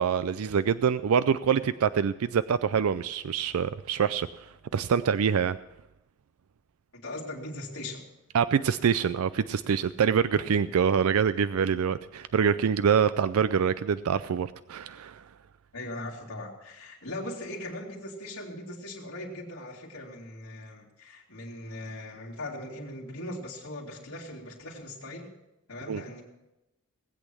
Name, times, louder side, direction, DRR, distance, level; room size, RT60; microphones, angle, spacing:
voice 1, 0.0-4.3 4.7-5.6 8.3-15.2 25.9-26.0, right 7 dB, 85° right, 14 dB, 0.4 m, -25 dB
voice 2, 6.9-8.0 10.3-10.5 15.7-25.3 25.7-26.2, left 1 dB, 80° left, -3 dB, 2.7 m, -39 dB
19.0 x 8.4 x 6.2 m, 0.92 s
head